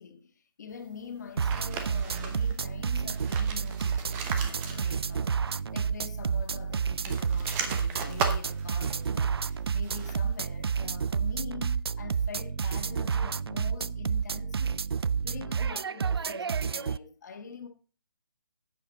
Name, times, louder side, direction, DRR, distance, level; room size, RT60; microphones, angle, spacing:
voice 1, 0.0-17.7, left 6 dB, 45° left, 1.8 m, -45 dB
sound 1, 1.4-2.6 3.0-5.2 5.5-5.6 6.8-10.4, right 6 dB, 15° right, 0.9 m, -37 dB
sound 2, 1.4-17.0, right 6 dB, 90° right, 0.4 m, -30 dB
10.5 x 8.3 x 4.0 m
hypercardioid pair, 165°, 13 cm